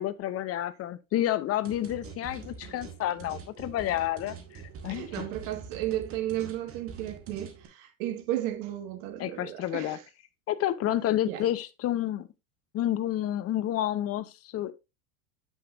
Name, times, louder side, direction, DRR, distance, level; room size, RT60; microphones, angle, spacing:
voice 1, 0.0-5.3 9.2-10.0 10.5-12.3 12.7-14.7, left 12 dB, 35° left, 0.7 m, -30 dB
sound 1, 1.6-7.7, right 6 dB, 30° right, 1.6 m, -45 dB
voice 2, 4.9-10.0 11.3-11.4, right 13 dB, 60° right, 1.5 m, -34 dB
7.8 x 6.3 x 2.5 m
hypercardioid pair, 100°, 43 cm